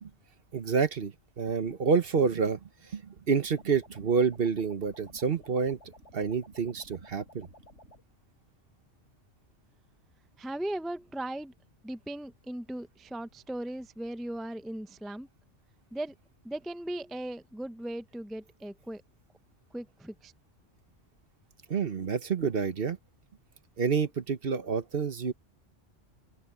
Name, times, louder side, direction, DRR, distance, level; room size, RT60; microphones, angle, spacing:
voice 1, 0.5-2.6 2.9-5.8 6.1-7.5 21.7-23.0 23.8-25.3, right 5 dB, 55° right, 1.2 m, -28 dB
sound 1, 3.6-8.0, equal, 70° left, 6.4 m, -54 dB
voice 2, 10.4-11.5 11.8-15.3 15.9-16.1 16.4-19.0 19.7-20.3, right 1 dB, ahead, 0.4 m, -38 dB
open air
omnidirectional pair, 1.2 m